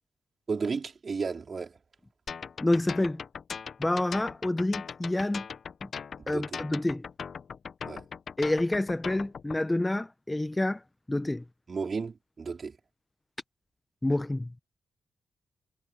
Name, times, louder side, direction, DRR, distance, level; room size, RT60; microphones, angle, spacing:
voice 1, 0.5-1.8 6.2-6.6 7.9-8.0 11.7-12.8, right 5 dB, 50° right, 4.3 m, -33 dB
sound 1, 2.3-9.6, left 6 dB, 65° left, 1.3 m, -39 dB
voice 2, 2.6-3.2 3.8-5.5 5.8-5.9 6.3-7.0 8.4-10.8 11.1-11.4 14.0-14.5, left 1 dB, 20° left, 1.1 m, -28 dB
supercardioid pair, 45°, 0 cm